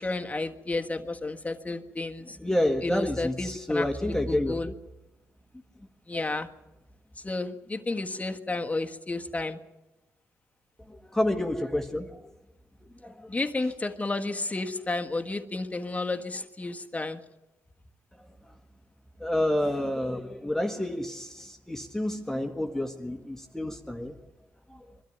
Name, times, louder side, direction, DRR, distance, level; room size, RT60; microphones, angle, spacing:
voice 1, 0.0-2.4 2.8-4.7 6.1-6.5 7.2-9.6 13.3-17.2, left 2 dB, 20° left, 5 dB, 1.5 m, -32 dB
voice 2, 2.4-4.7 6.1-6.2 10.9-12.2 13.0-13.4 18.1-18.5 19.2-24.2 24.7-24.9, left 1 dB, 5° left, 4 dB, 1.6 m, -29 dB
22.5 x 13.0 x 9.4 m, 1.0 s
cardioid pair, 85°, 6 cm